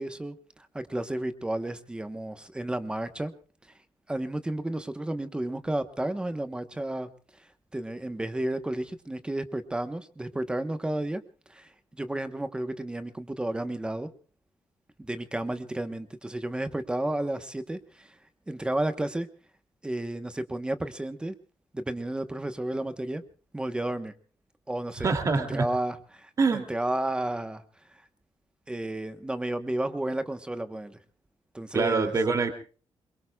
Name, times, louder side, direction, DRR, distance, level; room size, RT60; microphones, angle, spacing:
voice 1, 0.0-3.3 4.1-7.1 7.4-7.5 7.7-11.2 11.5-14.1 15.0-18.1 18.5-19.3 19.8-21.3 21.7-23.2 23.5-24.1 24.7-27.6 28.7-31.0 31.5-32.1, right 1 dB, 10° right, 9 dB, 1.1 m, -32 dB
voice 2, 25.0-25.6 26.4-26.6 31.7-32.5, right 4 dB, 35° right, 5 dB, 2.6 m, -24 dB
26.5 x 23.0 x 2.3 m, 0.40 s
wide cardioid pair, 175°, 9 cm